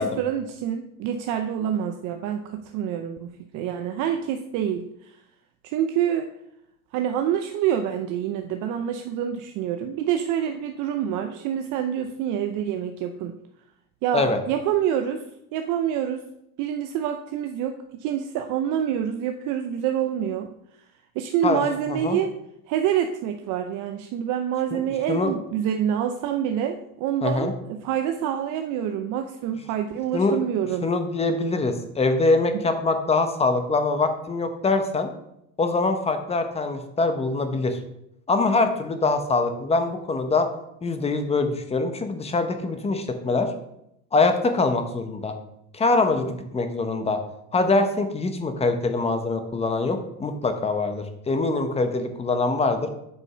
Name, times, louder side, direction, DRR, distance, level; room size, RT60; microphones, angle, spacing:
voice 1, 0.0-5.1 5.6-6.3 6.9-13.3 14.0-15.2 15.5-16.2 16.6-20.5 21.2-22.4 22.7-30.9 32.5-32.6, right 9 dB, 45° right, 6 dB, 0.7 m, -27 dB
voice 2, 27.2-27.5 30.1-30.4 30.8-35.1 35.6-37.8 38.3-40.5 40.8-43.5 44.1-45.4 45.7-47.2 47.5-52.9, left 3 dB, 15° left, 7 dB, 0.9 m, -23 dB
8.0 x 5.3 x 5.6 m, 0.80 s
supercardioid pair, 140°, 41 cm